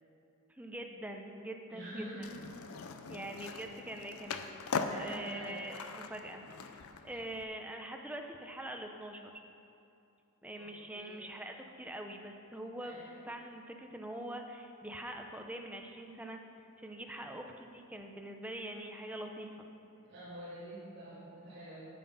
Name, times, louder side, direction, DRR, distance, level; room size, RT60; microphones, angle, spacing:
voice 1, 0.5-2.0 3.1-4.4 4.9-6.4 7.0-9.4 10.4-13.0 13.2-16.4 16.8-19.7, right 1 dB, 5° right, 3 dB, 0.7 m, -44 dB
voice 2, 1.7-2.4 3.3-3.4 4.8-5.7 10.6-11.3 12.8-13.2 20.0-21.9, right 1 dB, 50° right, -13 dB, 2.8 m, -46 dB
Skateboard, 2.2-7.4, left 4 dB, 70° left, 0.6 m, -41 dB
9.4 x 8.1 x 5.5 m, 2.6 s
head